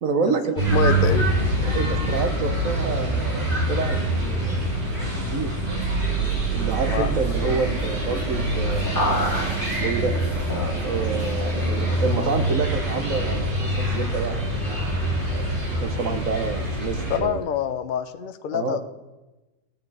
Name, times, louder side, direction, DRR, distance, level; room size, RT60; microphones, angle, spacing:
voice 1, 0.0-0.6 1.6-4.0 4.2-4.6 5.3-5.5 6.5-9.1 9.8-10.1 10.8-15.4 15.8-17.4 18.5-18.8, right 4 dB, 55° right, 7 dB, 1.3 m, -28 dB
sound 1, 0.6-17.2, right 1 dB, 30° right, 2.6 m, -25 dB
voice 2, 0.7-1.4 6.9-7.1 17.1-18.9, left 7 dB, 85° left, 9 dB, 0.4 m, -26 dB
sound 2, 6.7-12.4, left 1 dB, 10° left, 1.8 m, -32 dB
18.0 x 7.0 x 4.9 m, 1.1 s
omnidirectional pair, 1.9 m